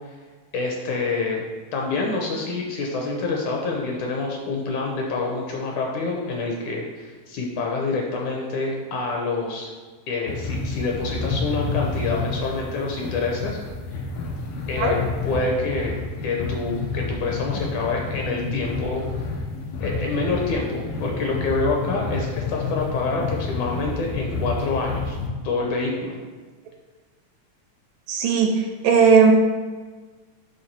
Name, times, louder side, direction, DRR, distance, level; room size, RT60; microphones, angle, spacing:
voice 1, 0.5-1.5 1.7-9.7 10.1-13.6 14.7-16.0 16.2-19.1 19.8-25.2 25.4-26.2, left 3 dB, 75° left, 0 dB, 1.9 m, -27 dB
sound 1, 10.3-25.3, left 4 dB, 90° left, 2.7 m, -29 dB
voice 2, 28.1-28.6 28.8-29.3, right 5 dB, 75° right, 3 dB, 2.2 m, -16 dB
7.9 x 3.5 x 5.9 m, 1.4 s
omnidirectional pair, 4.1 m